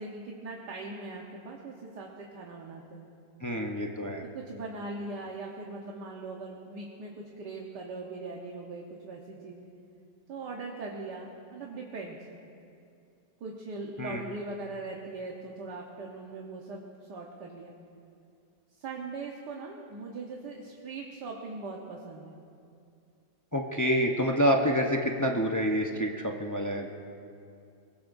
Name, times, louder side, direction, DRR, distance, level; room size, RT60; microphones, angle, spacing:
voice 1, 0.0-3.1 4.3-9.7 10.3-12.2 13.4-17.7 18.8-22.3, right 3 dB, 70° right, -1 dB, 1.8 m, -40 dB
voice 2, 3.4-4.2 14.0-14.2 23.5-26.9, equal, 25° left, 1 dB, 0.4 m, -27 dB
23.5 x 21.0 x 2.6 m, 2.5 s
omnidirectional pair, 1.9 m